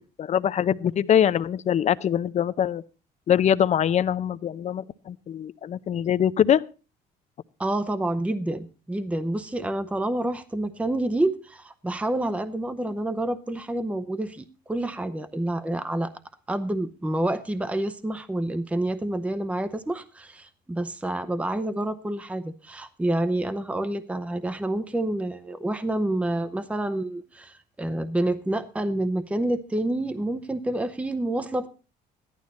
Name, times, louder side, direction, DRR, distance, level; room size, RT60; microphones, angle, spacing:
voice 1, 0.2-2.8 3.3-6.6, left 9 dB, 45° left, 17 dB, 0.5 m, -23 dB
voice 2, 7.6-16.1 16.5-31.7, right 1 dB, 10° right, 11 dB, 0.7 m, -28 dB
13.5 x 11.5 x 4.1 m, 0.34 s
cardioid pair, 110°, 17 cm